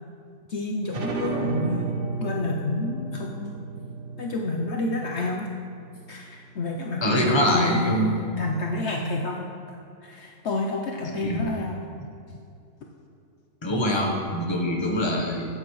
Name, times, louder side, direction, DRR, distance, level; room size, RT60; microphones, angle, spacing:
voice 1, 0.5-1.8 2.2-3.6 4.2-5.5 6.1-9.5 10.0-11.8 13.9-14.0, left 2 dB, 60° left, 0 dB, 0.9 m, -29 dB
sound 1, 0.9-6.2, right 4 dB, 45° right, 1.1 m, -33 dB
voice 2, 7.0-8.1 11.0-11.5 13.6-15.5, equal, 20° left, 0 dB, 1.1 m, -24 dB
13.5 x 8.7 x 3.2 m, 2.4 s
omnidirectional pair, 1.4 m